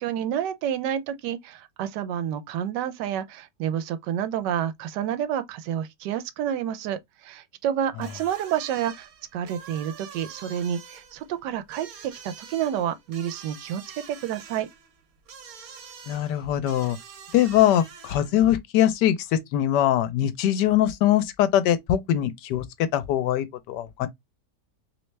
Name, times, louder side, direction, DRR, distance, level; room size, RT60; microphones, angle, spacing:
voice 1, 0.0-14.7, right 9 dB, 90° right, 1.2 m, -29 dB
sound 1, 8.0-18.4, right 6 dB, 65° right, 1.2 m, -46 dB
voice 2, 16.1-17.0 17.3-24.1, left 11 dB, 85° left, 1.2 m, -22 dB
3.1 x 3.0 x 3.1 m
omnidirectional pair, 1.8 m